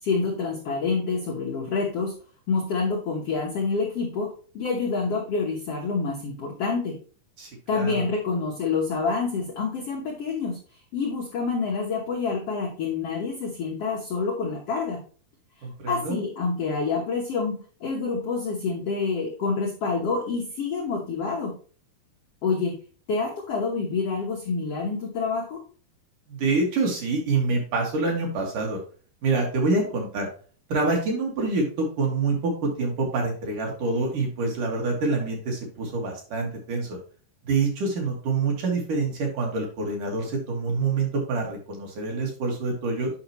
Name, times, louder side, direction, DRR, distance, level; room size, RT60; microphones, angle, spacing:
voice 1, 0.0-2.1 2.5-7.0 7.7-10.6 10.9-15.0 15.9-21.5 22.4-22.7 23.1-25.6, left 4 dB, 85° left, -2 dB, 1.3 m, -27 dB
voice 2, 7.4-8.0 15.6-16.2 26.3-28.8 29.2-30.3 30.7-37.0 37.4-43.1, right 3 dB, 55° right, 0 dB, 3.1 m, -26 dB
8.8 x 5.9 x 3.0 m, 0.41 s
omnidirectional pair, 4.6 m